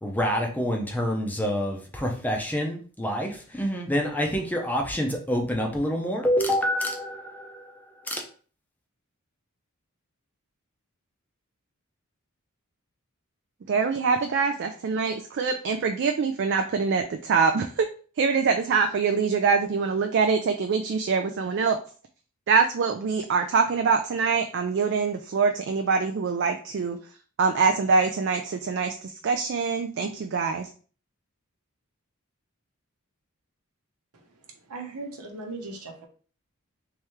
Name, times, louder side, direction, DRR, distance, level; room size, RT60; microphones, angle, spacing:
voice 1, 0.0-8.2, equal, 5° left, 1 dB, 0.6 m, -27 dB
voice 2, 13.7-17.9 18.2-21.8 22.5-27.0 27.4-30.7, right 5 dB, 55° right, 6 dB, 0.3 m, -24 dB
voice 3, 34.7-36.1, right 3 dB, 90° right, 1 dB, 1.0 m, -38 dB
3.5 x 3.2 x 3.0 m, 0.41 s
head